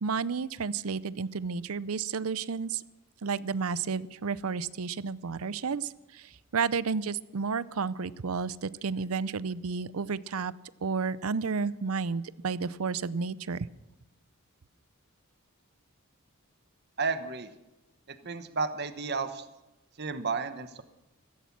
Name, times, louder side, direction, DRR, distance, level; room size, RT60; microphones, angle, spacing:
voice 1, 0.0-2.8 3.2-10.5 10.8-13.7, right 5 dB, 85° right, 18 dB, 0.6 m, -31 dB
voice 2, 17.0-17.5 18.1-19.5 20.0-20.8, right 4 dB, 50° right, 10 dB, 1.1 m, -32 dB
15.5 x 15.5 x 6.0 m, 0.97 s
head